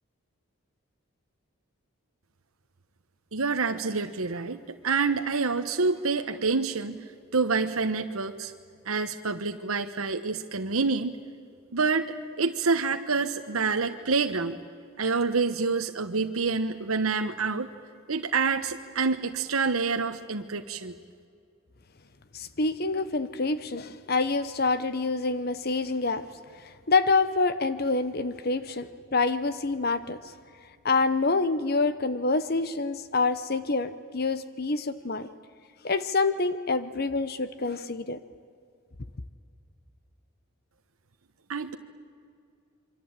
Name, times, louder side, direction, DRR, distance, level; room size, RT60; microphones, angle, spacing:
voice 1, 3.3-7.0 7.3-8.5 8.8-11.2 11.7-14.6 15.0-17.7 18.1-20.9 41.5-41.8, right 4 dB, 80° right, 6 dB, 1.1 m, -27 dB
voice 2, 22.3-26.3 26.6-30.3 30.8-35.3 35.8-38.2, left 3 dB, 45° left, 13 dB, 0.9 m, -27 dB
27.0 x 24.0 x 8.9 m, 2.3 s
head